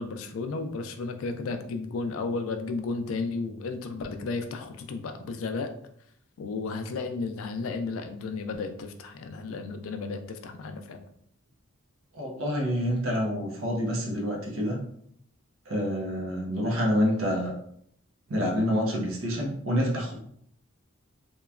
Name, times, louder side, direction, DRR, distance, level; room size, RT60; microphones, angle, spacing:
voice 1, 0.0-5.7 6.4-11.0, left 3 dB, 70° left, 6 dB, 0.3 m, -33 dB
voice 2, 12.1-14.8 15.7-17.5 18.3-20.2, equal, 70° right, -1 dB, 0.6 m, -27 dB
2.9 x 2.2 x 2.3 m, 0.68 s
head